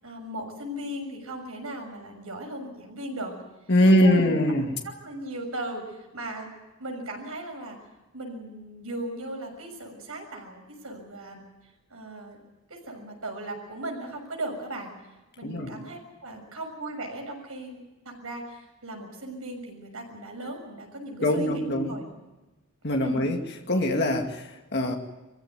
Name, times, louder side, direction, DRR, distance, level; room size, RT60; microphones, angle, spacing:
voice 1, 0.0-3.3 3.8-4.5 4.8-6.5 6.8-7.8 8.1-11.4 11.9-12.4 12.7-14.9 15.4-17.8 18.0-22.1 23.0-23.3, right 1 dB, 75° right, 2 dB, 6.6 m, -37 dB
voice 2, 3.7-4.7 15.4-15.7 21.2-21.9 22.8-23.4 23.7-24.9, left 1 dB, 50° left, 2 dB, 2.3 m, -22 dB
23.5 x 15.5 x 9.5 m, 1.1 s
head